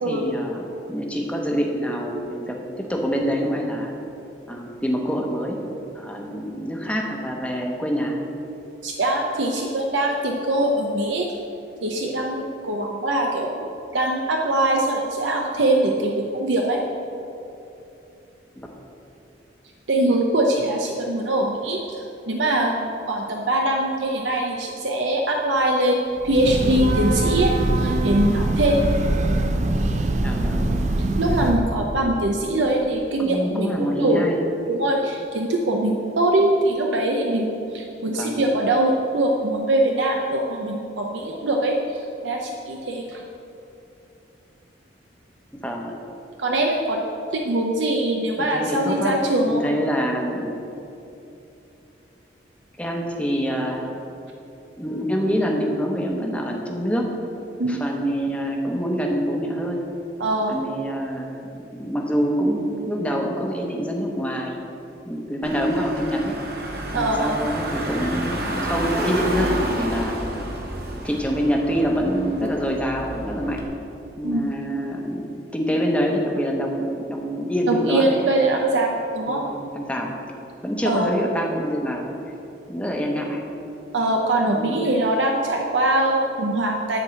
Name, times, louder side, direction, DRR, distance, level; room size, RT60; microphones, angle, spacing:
voice 1, 0.1-3.9 4.5-5.6 5.9-8.2 18.6-18.7 30.2-30.7 33.2-34.4 38.2-38.4 45.6-45.9 48.4-49.2 49.4-50.6 52.8-53.9 54.8-57.1 57.7-59.8 60.5-61.4 61.7-64.6 65.0-66.4 66.9-70.5 71.0-73.6 74.2-78.2 79.3-80.2 80.6-82.1 82.7-83.4 84.5-84.8, equal, 5° left, 0 dB, 1.0 m, -26 dB
voice 2, 8.8-11.3 11.8-16.8 19.9-28.8 31.2-34.3 34.7-43.2 46.4-47.0 47.3-49.6 57.6-57.8 60.2-60.6 66.9-67.4 74.2-74.5 77.7-79.4 80.8-81.2 83.9-87.0, right 1 dB, 80° right, 1 dB, 0.7 m, -22 dB
Breathing / Train, 26.2-31.7, right 2 dB, 40° right, 0.5 m, -22 dB
Car / Engine, 65.4-73.6, right 1 dB, 55° right, 1.2 m, -30 dB
11.0 x 4.6 x 7.6 m, 2.8 s
head